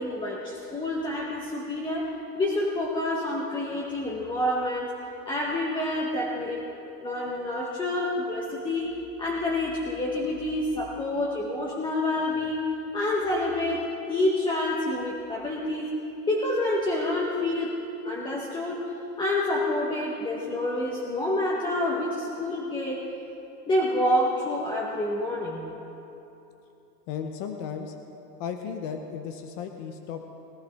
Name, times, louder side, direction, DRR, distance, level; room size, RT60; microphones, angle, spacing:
voice 1, 0.0-6.7 7.0-12.7 12.9-15.9 16.3-17.8 18.0-23.1 23.7-25.7, left 1 dB, 10° left, -4 dB, 0.8 m, -28 dB
voice 2, 27.1-27.9 28.4-30.3, left 7 dB, 25° left, 5 dB, 0.4 m, -35 dB
20.5 x 12.5 x 3.4 m, 2.9 s
supercardioid pair, 145°, 49 cm